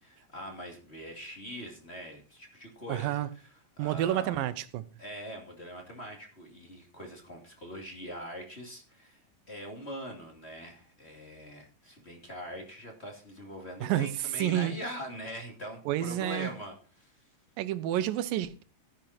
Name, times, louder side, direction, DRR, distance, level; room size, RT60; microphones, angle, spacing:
voice 1, 0.0-3.2 3.8-4.4 5.0-17.2, equal, 20° left, 2.6 m, -42 dB
voice 2, 2.9-3.3 3.8-4.9 13.8-14.1 14.4-14.8 15.9-16.5 17.6-18.6, right 13 dB, 80° right, 2.6 m, -29 dB
13.0 x 10.5 x 4.4 m
omnidirectional pair, 4.0 m